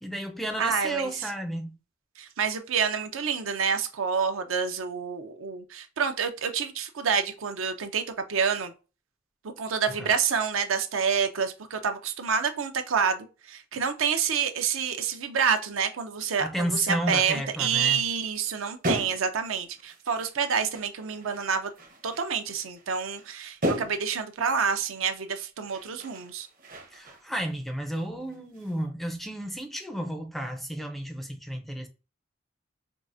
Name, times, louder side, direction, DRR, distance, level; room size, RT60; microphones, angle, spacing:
voice 1, 0.0-1.7 10.0-10.1 16.4-18.0 26.9-31.9, equal, ahead, 0.4 m, -32 dB
voice 2, 0.6-1.3 2.2-8.0 8.3-8.7 9.6-21.7 22.0-26.5, right 6 dB, 75° right, 0.6 m, -28 dB
sound 1, 17.5-17.7 18.0-20.4 20.7-24.4 25.2-25.4 25.7-27.6 27.9-28.8, equal, 45° right, 0.8 m, -37 dB
4.6 x 2.4 x 2.5 m
head